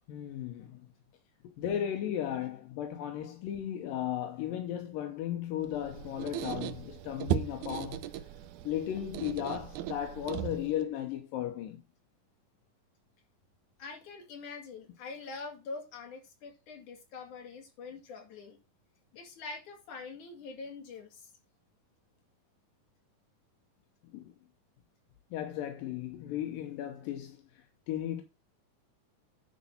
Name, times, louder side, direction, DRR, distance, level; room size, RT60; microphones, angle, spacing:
voice 1, 0.1-0.9 1.4-8.0 8.6-11.8 24.1-24.3 25.3-27.4 27.9-28.2, left 11 dB, 85° left, 2.6 m, -35 dB
Squeak, 5.6-10.9, right 12 dB, 75° right, 1.9 m, -37 dB
voice 2, 13.8-18.6 19.2-21.3, left 4 dB, 65° left, 3.9 m, -44 dB
10.0 x 4.1 x 5.5 m
omnidirectional pair, 3.9 m